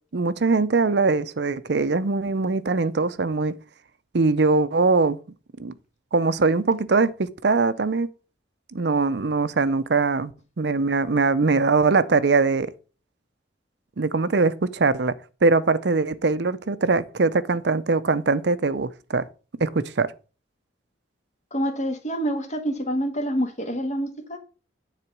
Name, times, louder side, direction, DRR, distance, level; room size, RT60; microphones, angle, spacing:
voice 1, 0.1-3.6 4.1-5.2 5.6-5.7 6.1-8.1 8.7-12.7 14.0-15.1 15.4-19.3 19.6-20.1, right 3 dB, 60° right, 0.6 m, -22 dB
voice 2, 21.5-24.4, equal, 40° left, 1.6 m, -27 dB
9.9 x 4.1 x 6.0 m
head